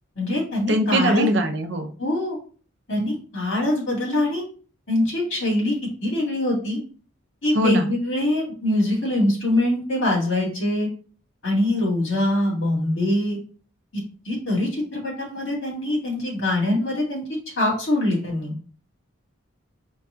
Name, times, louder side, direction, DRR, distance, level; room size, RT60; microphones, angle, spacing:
voice 1, 0.2-1.3 2.0-2.4 2.9-4.4 4.9-6.8 7.4-10.9 11.4-13.4 14.2-17.2 17.6-18.6, left 1 dB, 70° left, -3 dB, 2.2 m, -23 dB
voice 2, 0.7-1.9 7.6-7.9, right 1 dB, 60° right, 5 dB, 0.6 m, -21 dB
4.6 x 2.3 x 3.8 m, 0.40 s
head